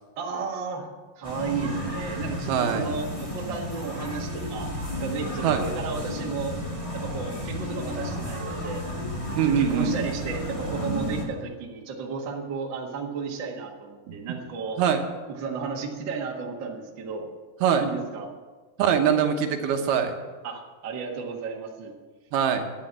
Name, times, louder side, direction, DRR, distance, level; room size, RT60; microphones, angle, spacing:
voice 1, 0.2-0.9 1.2-4.7 5.0-6.6 6.9-8.8 9.4-14.8 15.3-17.3 17.8-18.3 20.4-21.9, right 5 dB, 50° right, 0 dB, 1.5 m, -33 dB
sound 1, 1.2-11.2, equal, 15° left, 1.4 m, -32 dB
voice 2, 2.5-2.9 5.4-5.6 9.4-10.1 14.1-14.2 14.8-15.0 17.6-17.8 18.8-20.1 22.3-22.6, right 8 dB, 75° right, 5 dB, 2.9 m, -23 dB
12.0 x 9.7 x 7.5 m, 1.3 s
omnidirectional pair, 4.5 m